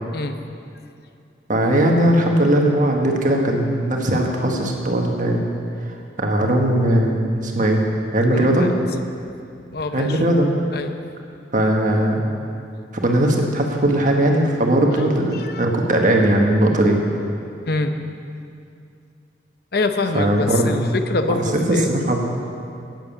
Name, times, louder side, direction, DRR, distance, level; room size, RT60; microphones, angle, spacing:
voice 1, 1.5-5.4 6.2-7.8 8.1-8.7 9.9-10.5 11.5-12.2 13.0-17.0 20.1-20.9 21.3-22.3, right 1 dB, 45° right, 1 dB, 1.5 m, -19 dB
voice 2, 8.3-8.7 9.2-9.3 9.7-10.2 10.7-11.0 15.3-15.6 17.6-17.9 19.7-21.9, left 3 dB, 60° left, 7 dB, 0.7 m, -25 dB
11.0 x 9.2 x 7.3 m, 2.4 s
head